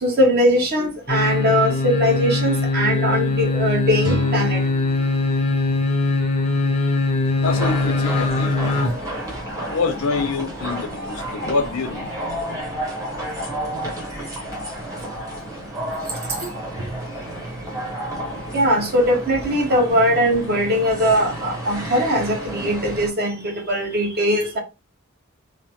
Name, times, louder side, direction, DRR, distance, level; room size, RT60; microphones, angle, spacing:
voice 1, 0.0-4.6 18.5-24.6, equal, 50° right, 0.9 m, -20 dB
sound 1, 1.1-8.9 9.3-9.4, left 2 dB, 30° left, 0.6 m, -21 dB
sound 2, 4.0-7.0, left 1 dB, 90° right, 1.0 m, -34 dB
voice 2, 7.4-8.5 9.7-12.1, left 4 dB, 85° left, 0.6 m, -25 dB
sound 3, 7.4-23.1, right 1 dB, 15° right, 0.8 m, -31 dB
3.0 x 2.0 x 2.8 m
head